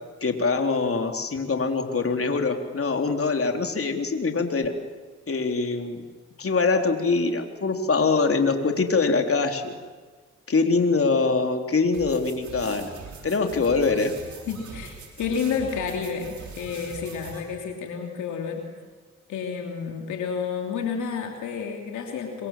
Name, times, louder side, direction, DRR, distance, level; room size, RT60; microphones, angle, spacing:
voice 1, 0.2-4.7 5.3-6.0 6.4-9.7 10.5-12.9 13.2-14.1, left 4 dB, 50° left, 4 dB, 3.8 m, -23 dB
sound 1, 11.9-17.4, right 5 dB, 75° right, 6.5 m, -42 dB
voice 2, 14.5-18.6 19.3-22.5, left 6 dB, 90° left, 2 dB, 3.2 m, -30 dB
26.5 x 25.0 x 7.6 m, 1.5 s
supercardioid pair, 50°, 29 cm